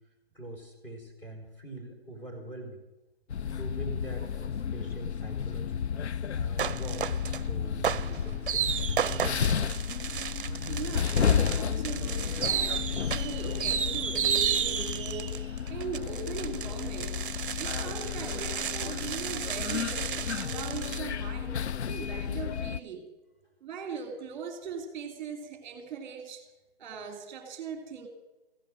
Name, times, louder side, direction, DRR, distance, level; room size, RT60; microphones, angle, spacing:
voice 1, 0.3-2.8 3.6-5.8 6.3-9.4 9.7-9.9, right 2 dB, 15° left, 1 dB, 3.7 m, -43 dB
sound 1, 3.3-22.8, left 8 dB, 85° left, 0.6 m, -32 dB
sound 2, 6.6-7.4 7.8-21.0, right 8 dB, 55° right, 0.6 m, -33 dB
sound 3, 7.0-12.9, left 1 dB, 40° left, 3.9 m, -45 dB
voice 2, 10.7-17.3 17.6-23.1 23.6-26.4 26.8-28.1, right 6 dB, 20° right, 5 dB, 2.1 m, -40 dB
15.0 x 12.5 x 6.3 m, 1.1 s
hypercardioid pair, 155°, 32 cm